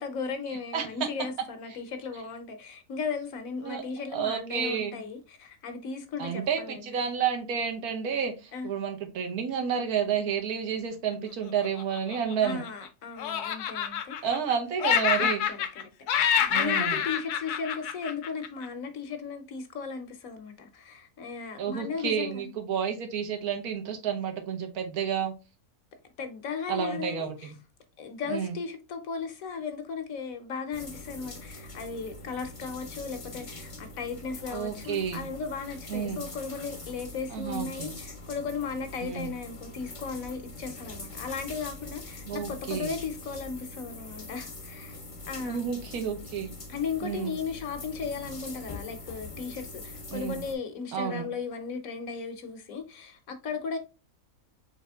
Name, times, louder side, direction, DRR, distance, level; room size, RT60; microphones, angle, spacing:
voice 1, 0.0-6.8 8.5-8.7 12.4-14.3 15.2-15.6 16.1-22.5 26.2-27.5 28.0-45.0 45.3-45.7 46.7-53.8, left 5 dB, 65° left, 1.1 m, -36 dB
voice 2, 4.1-4.9 6.2-12.6 14.2-15.4 16.5-17.0 21.6-25.3 26.7-27.6 28.3-28.6 34.5-35.3 35.9-36.3 37.3-37.9 39.0-39.3 42.3-43.0 45.4-46.5 47.0-47.3 50.1-50.4 50.9-51.3, right 7 dB, 75° right, 1.4 m, -30 dB
Laughter, 11.6-12.9 13.2-14.5 14.8-18.7, left 8 dB, 85° left, 1.1 m, -27 dB
sound 1, 30.7-50.5, left 2 dB, 30° left, 0.6 m, -43 dB
4.1 x 3.2 x 3.3 m
omnidirectional pair, 1.6 m